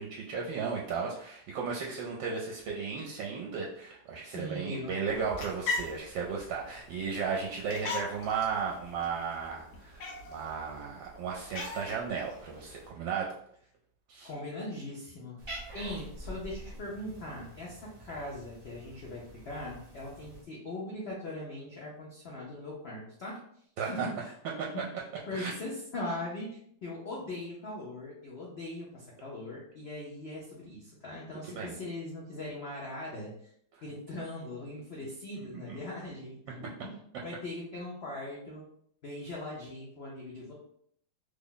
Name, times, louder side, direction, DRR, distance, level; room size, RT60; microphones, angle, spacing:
voice 1, 0.0-13.3 14.1-14.3 23.8-24.1 24.6-24.7 25.3-25.5 31.5-31.7 35.4-35.8, right 5 dB, 80° right, -1 dB, 1.3 m, -35 dB
voice 2, 4.2-4.9 14.2-15.4 15.7-23.4 23.9-24.3 24.7-24.8 25.3-33.5 33.8-36.7 37.2-38.6 39.0-40.5, left 1 dB, 85° left, -4 dB, 0.5 m, -40 dB
sound 1, 5.1-12.9, left 3 dB, 65° left, 1.2 m, -41 dB
Cat, 15.4-20.4, right 1 dB, 40° right, 0.4 m, -46 dB
3.3 x 2.1 x 3.8 m, 0.66 s
omnidirectional pair, 2.0 m